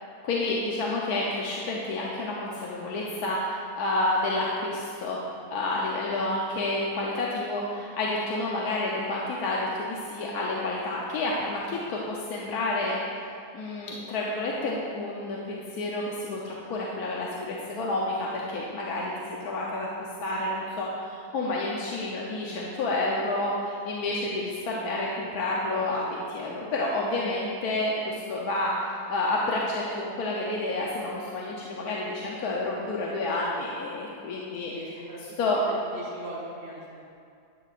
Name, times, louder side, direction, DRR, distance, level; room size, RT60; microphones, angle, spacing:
voice 1, 0.2-5.2 5.5-13.0 13.5-19.9 20.2-35.0 35.4-35.6, left 2 dB, 75° left, -4 dB, 1.3 m, -29 dB
voice 2, 34.6-35.2 35.7-37.0, right 1 dB, 45° right, -8 dB, 1.6 m, -41 dB
10.5 x 8.2 x 2.4 m, 2.4 s
omnidirectional pair, 1.7 m